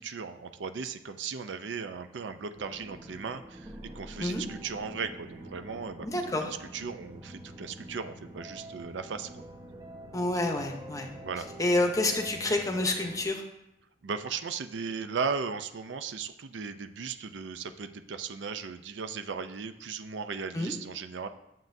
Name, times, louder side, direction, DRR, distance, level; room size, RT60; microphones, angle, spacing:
voice 1, 0.0-9.4 11.2-11.5 14.0-21.3, right 5 dB, 75° right, 8 dB, 0.5 m, -37 dB
sound 1, 2.6-13.2, right 1 dB, 20° right, 0.7 m, -46 dB
voice 2, 6.0-6.5 10.1-11.1 11.6-13.4 20.5-20.7, left 2 dB, 20° left, 4 dB, 0.8 m, -28 dB
9.5 x 7.4 x 2.6 m, 0.87 s
head